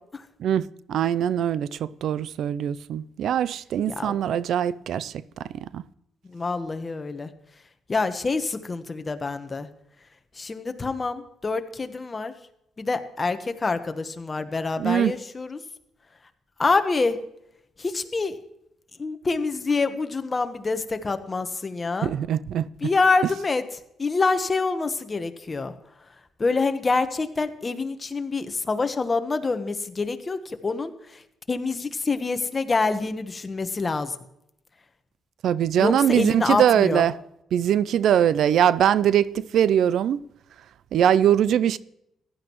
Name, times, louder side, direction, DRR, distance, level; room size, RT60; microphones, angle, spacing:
voice 1, 0.4-5.5 5.7-5.8 14.8-15.1 22.0-22.7 35.4-37.2 37.5-40.2 40.9-41.8, right 10 dB, 75° right, 0.4 m, -22 dB
voice 2, 3.9-4.2 6.3-7.3 7.9-9.7 10.4-12.3 12.8-15.6 16.6-17.2 17.8-18.4 19.0-22.1 22.8-25.7 26.4-31.2 31.5-34.1 35.8-37.1, left 3 dB, 30° left, 1.1 m, -26 dB
15.5 x 11.0 x 3.1 m
cardioid pair, 75°, 0 cm